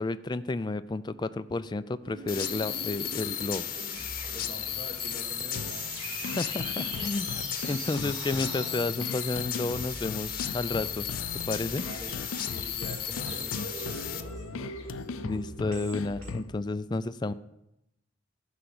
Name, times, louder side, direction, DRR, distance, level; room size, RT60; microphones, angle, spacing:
voice 1, 0.0-3.7 6.2-11.1 11.5-11.8 15.2-17.3, left 2 dB, 20° left, 12 dB, 0.3 m, -31 dB
sound 1, 2.0-16.3, right 2 dB, 85° right, 3.4 m, -43 dB
sound 2, 2.3-14.2, left 9 dB, 45° left, 0.9 m, -35 dB
voice 2, 4.3-6.2 7.3-7.4 7.7-7.9 11.8-12.2 12.4-14.4, equal, 35° right, 1 dB, 1.9 m, -45 dB
sound 3, 5.6-16.6, left 5 dB, 85° left, 0.5 m, -39 dB
11.5 x 5.7 x 7.8 m, 0.87 s
head